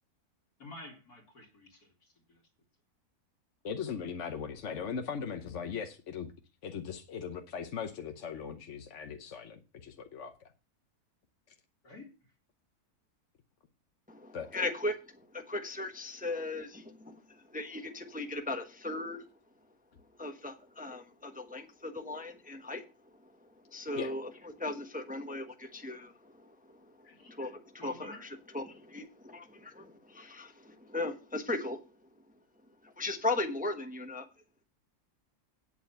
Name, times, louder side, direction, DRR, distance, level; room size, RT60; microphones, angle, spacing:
voice 1, 0.6-2.5 11.8-12.3 27.1-27.4 27.8-28.3, left 2 dB, 80° left, 2 dB, 3.0 m, -50 dB
voice 2, 3.6-6.3 6.6-10.5 14.3-14.5 24.0-24.1 27.0-27.2, left 6 dB, 55° left, 6 dB, 1.1 m, -39 dB
voice 3, 14.1-19.3 20.2-28.1 28.5-31.8 32.8-34.3, left 2 dB, 5° right, 5 dB, 1.0 m, -38 dB
8.9 x 7.4 x 5.6 m, 0.32 s
omnidirectional pair, 1.6 m